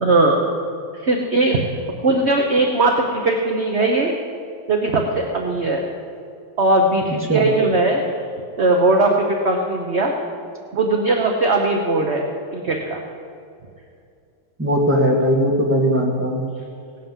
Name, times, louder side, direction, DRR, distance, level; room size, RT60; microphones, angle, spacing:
voice 1, 0.0-0.5 1.0-1.6 2.0-4.1 4.7-5.8 6.6-8.0 8.6-10.1 10.7-12.2 12.5-13.0, right 2 dB, 40° right, 1 dB, 1.1 m, -19 dB
voice 2, 14.6-16.4, equal, 5° right, -2 dB, 1.9 m, -18 dB
17.0 x 9.1 x 7.4 m, 2.4 s
omnidirectional pair, 2.2 m